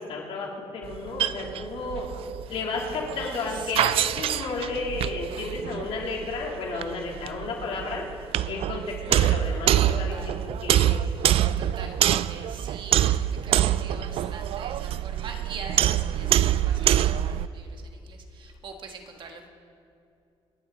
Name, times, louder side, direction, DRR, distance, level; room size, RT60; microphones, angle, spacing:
voice 1, 0.0-2.1 2.5-8.1 8.5-11.0 16.1-16.3, left 3 dB, 70° left, -2 dB, 3.4 m, -33 dB
sound 1, 0.8-17.5, right 11 dB, 70° right, 0.4 m, -25 dB
voice 2, 3.5-4.2 9.9-10.4 11.6-19.5, right 4 dB, 50° right, 3 dB, 1.7 m, -43 dB
27.0 x 11.5 x 4.1 m, 2.5 s
cardioid pair, 120°, 10 cm